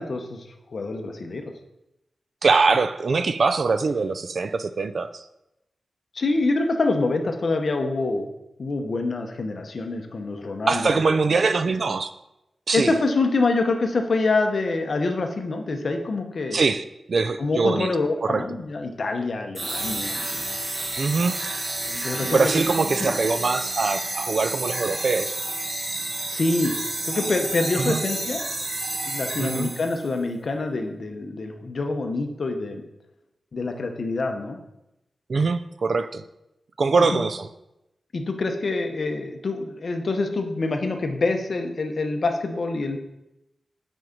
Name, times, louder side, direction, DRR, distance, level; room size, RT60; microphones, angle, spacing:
voice 1, 0.0-1.5 6.1-8.3 8.6-11.0 12.7-16.6 17.4-20.5 21.9-22.6 23.0-23.2 26.3-26.7 27.0-28.4 29.0-32.8 33.5-34.6 37.0-37.3 38.1-43.0, left 3 dB, 55° left, 4 dB, 0.8 m, -26 dB
voice 2, 2.4-5.2 10.7-12.1 12.7-12.9 16.5-17.9 18.2-18.4 21.0-21.4 22.2-25.4 27.8-28.0 29.4-29.7 35.3-36.2 36.8-37.5, right 4 dB, 55° right, 11 dB, 0.3 m, -23 dB
sound 1, 19.5-30.1, right 2 dB, 30° right, 0.7 m, -30 dB
6.1 x 4.5 x 5.1 m, 0.89 s
wide cardioid pair, 135°, 0 cm